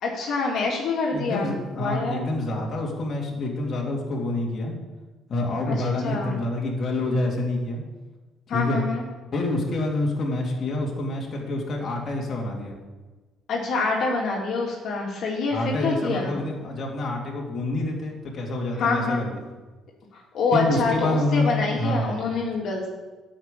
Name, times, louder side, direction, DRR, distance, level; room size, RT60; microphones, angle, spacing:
voice 1, 0.0-2.3 5.7-6.3 8.5-9.0 13.5-16.3 18.7-19.3 20.1-22.9, left 3 dB, 60° left, -2 dB, 2.7 m, -26 dB
voice 2, 1.1-4.7 5.3-7.8 8.5-8.8 9.3-12.8 15.5-19.3 20.5-22.2, left 2 dB, 45° left, -2 dB, 2.8 m, -27 dB
9.9 x 6.0 x 8.4 m, 1.2 s
cardioid pair, 85°, 0 cm